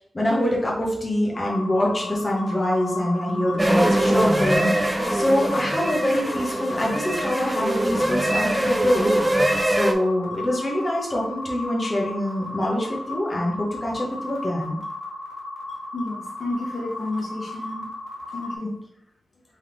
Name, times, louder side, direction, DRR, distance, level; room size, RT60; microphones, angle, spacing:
voice 1, 0.1-9.1 9.6-14.8 18.6-18.7, left 1 dB, 25° left, -3 dB, 0.9 m, -25 dB
sound 1, 1.3-18.6, left 2 dB, 50° left, 1.2 m, -35 dB
sound 2, 3.6-9.9, right 1 dB, 15° right, 0.4 m, -23 dB
voice 2, 15.9-17.9 18.3-18.8, left 2 dB, 75° left, -1 dB, 0.9 m, -31 dB
3.5 x 3.1 x 3.9 m, 0.76 s
wide cardioid pair, 145°, 0 cm